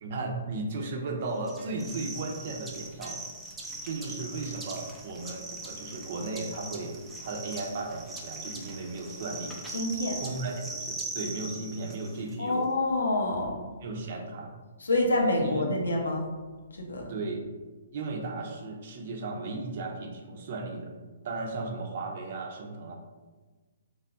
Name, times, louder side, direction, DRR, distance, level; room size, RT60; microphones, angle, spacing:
voice 1, 0.0-3.2 3.8-9.6 10.2-12.7 13.8-14.5 15.4-15.5 17.1-17.5 17.9-20.9 21.2-22.9, right 3 dB, 55° right, 2 dB, 0.6 m, -35 dB
sound 1, 1.4-12.3, right 2 dB, 5° right, 0.5 m, -41 dB
voice 2, 9.7-10.2 12.4-13.7 14.8-16.3 16.7-17.1, left 2 dB, 90° left, 1 dB, 0.8 m, -27 dB
3.3 x 2.3 x 3.8 m, 1.3 s
hypercardioid pair, 140°, 0 cm